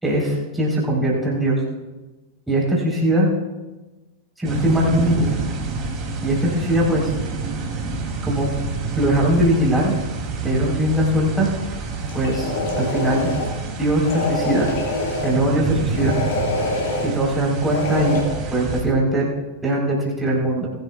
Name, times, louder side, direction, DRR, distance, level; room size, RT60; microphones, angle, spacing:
voice 1, 0.0-1.6 2.5-3.3 4.4-5.3 6.2-7.1 8.2-8.5 9.0-10.0 10.4-11.5 12.1-12.5 12.8-13.3 13.8-14.7 15.2-16.2 17.0-18.2 18.5-19.3 19.6-20.7, right 1 dB, 5° right, -4 dB, 4.0 m, -20 dB
sound 1, 4.4-18.8, right 4 dB, 30° right, 2.8 m, -28 dB
sound 2, 12.0-13.5 14.0-15.4 15.9-17.1 17.7-18.2, left 2 dB, 55° left, 5.0 m, -25 dB
21.0 x 11.5 x 2.4 m, 1.2 s
figure-of-eight pair, 90°, 0 cm